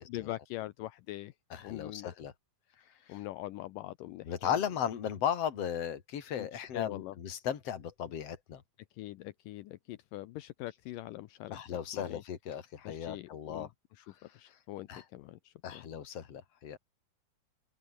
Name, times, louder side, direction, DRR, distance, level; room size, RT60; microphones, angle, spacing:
voice 1, 0.0-2.1 3.1-4.6 6.4-7.2 8.9-12.2 12.8-15.9, left 16 dB, 80° left, 2.4 m, -43 dB
voice 2, 1.5-2.3 3.1-3.2 4.3-8.6 11.5-13.7 14.9-15.0 15.6-16.8, left 9 dB, 45° left, 3.1 m, -36 dB
open air
omnidirectional pair, 4.1 m